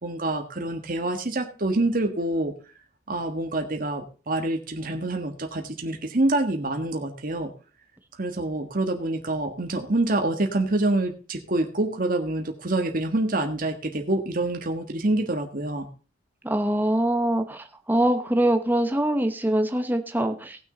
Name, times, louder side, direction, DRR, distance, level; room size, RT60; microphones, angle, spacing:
voice 1, 0.0-2.5 3.1-7.5 8.2-15.9, right 2 dB, 50° right, 4 dB, 1.5 m, -26 dB
voice 2, 16.4-20.6, right 1 dB, 10° right, 6 dB, 0.9 m, -23 dB
18.0 x 6.3 x 3.9 m, 0.35 s
head